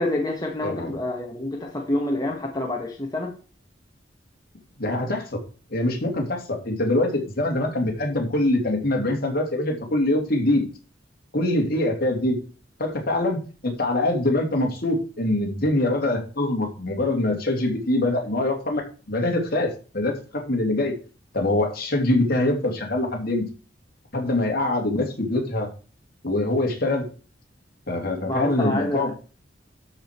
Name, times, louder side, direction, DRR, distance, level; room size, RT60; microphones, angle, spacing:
voice 1, 0.0-3.3 28.3-29.1, left 1 dB, 20° left, 0 dB, 1.6 m, -27 dB
voice 2, 4.8-5.4 5.7-10.7 11.3-12.4 12.8-18.8 19.1-20.9 21.3-23.5 24.1-25.7 26.2-27.1 27.9-29.1, left 1 dB, 50° left, 1 dB, 2.7 m, -24 dB
12.5 x 5.1 x 4.6 m, 0.36 s
head